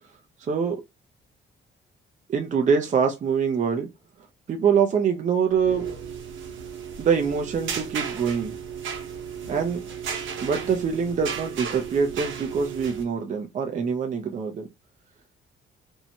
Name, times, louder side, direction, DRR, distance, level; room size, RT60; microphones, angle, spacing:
voice 1, 0.4-0.8 2.3-3.9 4.5-5.8 7.0-8.6 9.5-9.8 10.4-14.7, right 6 dB, 40° right, 0.5 m, -24 dB
sound 1, 5.5-13.0, right 7 dB, 75° right, 0.8 m, -34 dB
2.7 x 2.1 x 2.8 m
cardioid pair, 90°, 20 cm